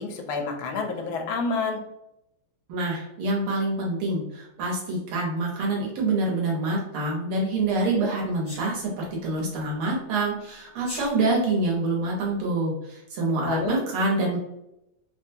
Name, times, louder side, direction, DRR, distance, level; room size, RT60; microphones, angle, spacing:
voice 1, 0.0-1.8 13.4-13.8, left 4 dB, 80° left, 3 dB, 1.4 m, -28 dB
voice 2, 2.7-14.4, right 2 dB, 80° right, -3 dB, 1.8 m, -26 dB
Sneeze, 8.4-8.7 10.8-11.1, left 1 dB, 15° left, 0.8 m, -36 dB
3.8 x 2.2 x 2.7 m, 0.84 s
omnidirectional pair, 2.3 m